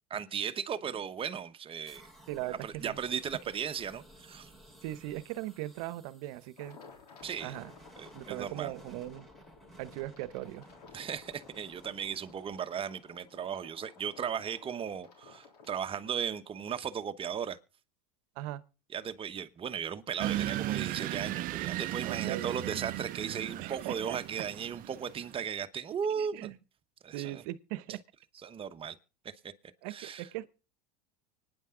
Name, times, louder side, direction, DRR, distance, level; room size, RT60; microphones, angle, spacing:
voice 1, 0.1-2.0 2.6-4.5 7.2-7.5 8.0-8.7 10.9-17.6 18.9-26.5 27.0-27.4 28.4-29.0 29.9-30.3, right 7 dB, 25° right, 1.1 m, -36 dB
sound 1, 1.9-13.7, right 1 dB, ahead, 5.2 m, -57 dB
voice 2, 2.3-3.0 4.8-6.8 7.4-7.7 8.1-9.3 9.8-10.6 18.4-18.6 22.0-22.8 23.6-24.2 26.2-26.6 27.1-28.0 29.8-30.5, right 15 dB, 65° right, 1.0 m, -39 dB
sound 2, 6.6-16.4, left 5 dB, 90° left, 3.5 m, -56 dB
sound 3, 20.2-25.4, right 15 dB, 45° right, 0.6 m, -36 dB
25.0 x 9.8 x 3.8 m
supercardioid pair, 105°, 20 cm